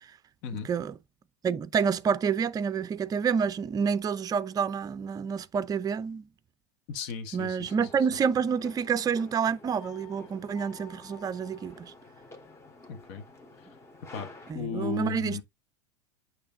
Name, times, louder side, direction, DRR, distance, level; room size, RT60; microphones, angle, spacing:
voice 1, 1.4-6.2 7.3-11.9 14.5-15.4, right 6 dB, 25° right, 0.6 m, -28 dB
voice 2, 6.9-8.2 12.9-13.2 13.6-13.7 14.1-15.4, left 6 dB, 55° left, 1.5 m, -36 dB
sound 1, 7.6-14.5, left 3 dB, 20° left, 1.9 m, -50 dB
8.7 x 3.3 x 3.6 m
hypercardioid pair, 90°, 15 cm